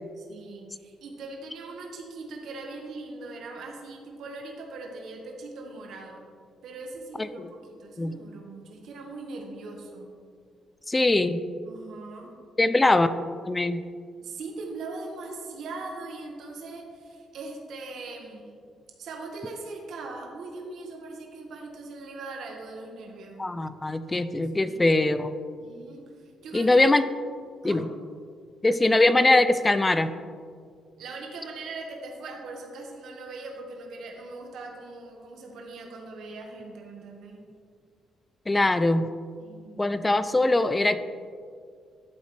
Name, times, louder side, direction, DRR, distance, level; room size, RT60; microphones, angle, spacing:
voice 1, 0.2-6.3 6.6-10.1 11.7-12.3 14.2-18.6 19.0-23.4 24.5-24.9 25.6-26.8 27.6-27.8 31.0-37.4 39.4-40.0, right 3 dB, 60° right, 0 dB, 1.6 m, -40 dB
voice 2, 10.9-11.4 12.6-13.1 13.4-13.8 23.4-25.3 26.5-27.0 27.6-27.9 28.6-30.1 38.5-39.1 39.8-41.0, left 2 dB, 10° left, 12 dB, 0.3 m, -22 dB
13.0 x 8.2 x 3.3 m, 2.1 s
cardioid pair, 175°, 0 cm